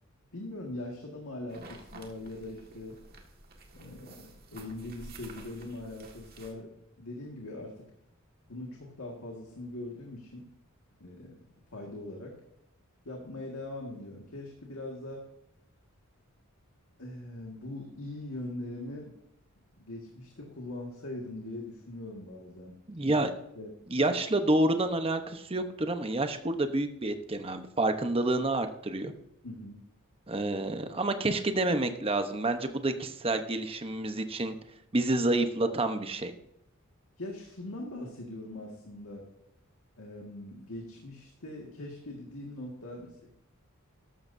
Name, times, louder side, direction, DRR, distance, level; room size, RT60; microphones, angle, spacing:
voice 1, 0.3-3.0 3.7-7.8 8.5-10.5 11.0-11.3 11.7-12.4 13.0-15.3 17.0-19.2 19.8-23.1 23.6-23.7 29.4-29.8 37.2-39.3 40.0-43.4, left 1 dB, 80° left, 0 dB, 1.9 m, -41 dB
sound 1, 1.5-6.5, right 2 dB, 45° right, 1.8 m, -50 dB
voice 2, 22.9-23.3 23.9-29.1 30.3-34.5 34.9-36.3, right 2 dB, 25° right, 7 dB, 0.9 m, -28 dB
13.5 x 12.0 x 2.7 m, 0.79 s
head